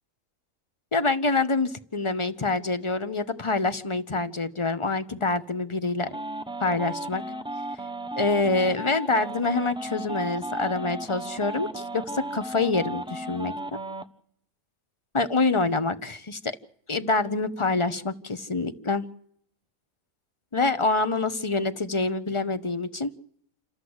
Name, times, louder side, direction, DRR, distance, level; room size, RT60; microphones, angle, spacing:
voice 1, 0.9-6.1 6.6-7.2 8.2-13.5 15.1-16.5 16.9-19.0 20.5-23.1, left 3 dB, 25° left, 12 dB, 0.9 m, -26 dB
sound 1, 6.1-14.0, right 1 dB, 5° right, 0.7 m, -35 dB
28.5 x 13.5 x 8.0 m, 0.68 s
omnidirectional pair, 1.5 m